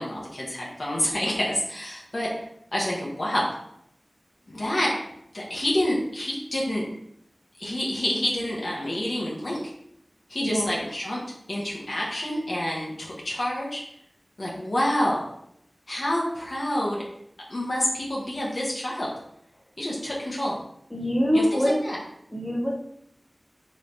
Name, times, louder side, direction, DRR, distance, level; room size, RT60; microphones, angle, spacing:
voice 1, 0.0-2.3 2.7-3.4 4.5-6.8 7.6-9.6 10.3-11.2 11.5-13.8 14.4-15.3 15.9-17.0 17.5-19.2 19.8-20.6 21.3-22.0, left 1 dB, 65° left, -4 dB, 0.8 m, -28 dB
voice 2, 10.4-10.8 20.9-21.8 22.3-22.7, equal, 15° left, -4 dB, 1.1 m, -24 dB
3.2 x 3.1 x 2.6 m, 0.74 s
wide cardioid pair, 45°, 0 cm